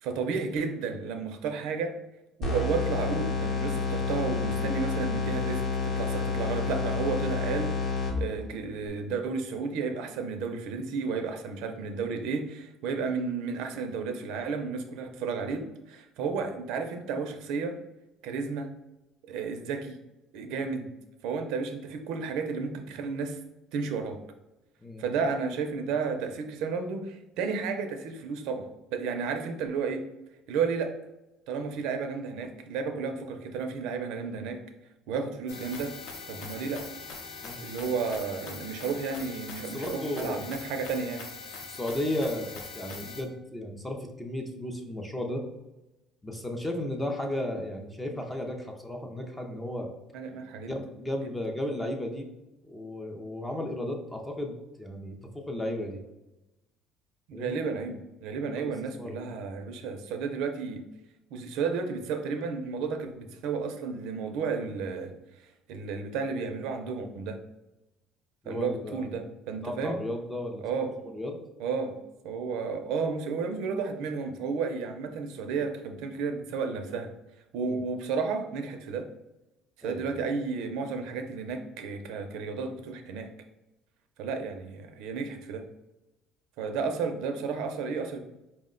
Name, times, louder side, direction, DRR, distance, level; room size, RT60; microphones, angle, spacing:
voice 1, 0.0-1.9 2.4-17.8 18.2-18.7 19.3-20.0 20.3-20.9 21.2-23.4 23.7-24.2 25.0-30.0 30.5-30.9 31.5-34.6 35.1-35.9 36.3-36.8 37.6-41.2 50.1-50.8 51.2-51.3 57.3-60.8 61.3-65.1 65.4-67.4 68.5-70.0 70.6-70.9 71.6-72.0 72.2-77.1 77.5-79.1 79.8-83.3 84.2-85.6 86.6-88.2, right 5 dB, 70° right, 6 dB, 0.5 m, -32 dB
sound 1, 2.4-8.5, left 4 dB, 35° left, 0.8 m, -29 dB
sound 2, 35.5-43.2, left 4 dB, 70° left, 0.7 m, -42 dB
voice 2, 39.7-40.4 41.6-42.5 42.7-45.4 46.2-49.9 50.7-52.3 52.6-56.0 57.3-57.6 58.6-58.7 59.0-59.3 68.4-69.2 69.6-70.6 71.1-71.4 77.6-77.8 79.8-80.0, left 1 dB, 5° left, 3 dB, 0.4 m, -34 dB
4.5 x 2.1 x 3.7 m, 0.96 s
cardioid pair, 175°, 0 cm